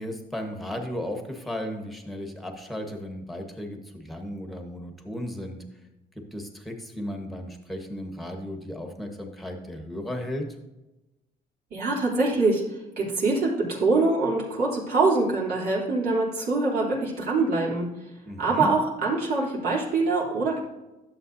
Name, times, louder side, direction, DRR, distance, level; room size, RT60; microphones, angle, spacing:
voice 1, 0.0-5.6 6.3-10.4 18.3-18.7, left 1 dB, ahead, 3 dB, 1.3 m, -35 dB
voice 2, 11.7-17.9 18.4-20.6, right 3 dB, 70° right, -6 dB, 3.1 m, -24 dB
11.0 x 7.3 x 2.7 m, 0.99 s
cardioid pair, 115°, 17 cm